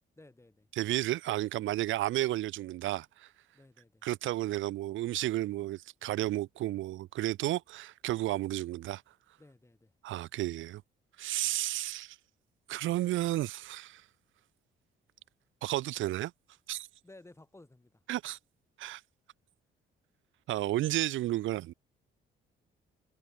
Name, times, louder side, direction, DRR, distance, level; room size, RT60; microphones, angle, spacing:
voice 1, 0.2-0.7 3.5-4.1 9.4-9.9 11.5-11.6 17.0-18.0 18.9-19.0, left 2 dB, 15° left, 5.3 m, -57 dB
voice 2, 0.7-3.3 4.0-9.0 10.0-10.8 11.2-12.2 12.7-14.0 15.6-16.3 16.7-16.9 18.1-18.4 18.8-19.0 20.5-21.7, right 15 dB, 80° right, 0.7 m, -32 dB
cardioid pair, 90°, 20 cm